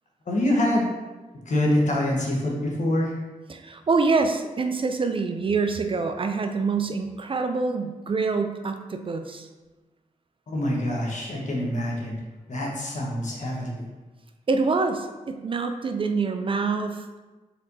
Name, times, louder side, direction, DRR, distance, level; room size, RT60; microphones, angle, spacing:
voice 1, 0.3-0.9 1.5-3.1 10.5-12.2 12.5-13.8, left 1 dB, 60° left, -2 dB, 1.1 m, -25 dB
voice 2, 3.5-9.5 14.5-17.1, right 4 dB, 40° right, 6 dB, 0.4 m, -26 dB
4.3 x 4.0 x 2.7 m, 1.2 s
cardioid pair, 65°, 14 cm